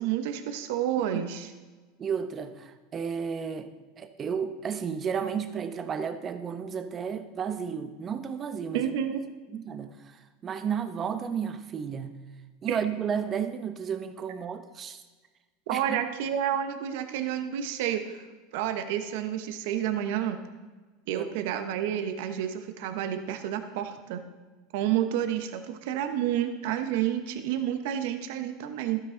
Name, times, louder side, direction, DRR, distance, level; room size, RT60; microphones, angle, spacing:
voice 1, 0.0-1.5 8.7-9.2 12.7-12.8 15.7-18.2 18.5-20.4 21.1-24.2 24.7-29.0, right 10 dB, 70° right, 8 dB, 0.9 m, -30 dB
voice 2, 2.0-3.7 4.0-8.9 9.5-12.2 12.6-15.0 15.7-16.0 21.1-21.3, right 7 dB, 30° right, 10 dB, 0.9 m, -33 dB
12.5 x 9.1 x 3.9 m, 1.3 s
supercardioid pair, 115°, 0 cm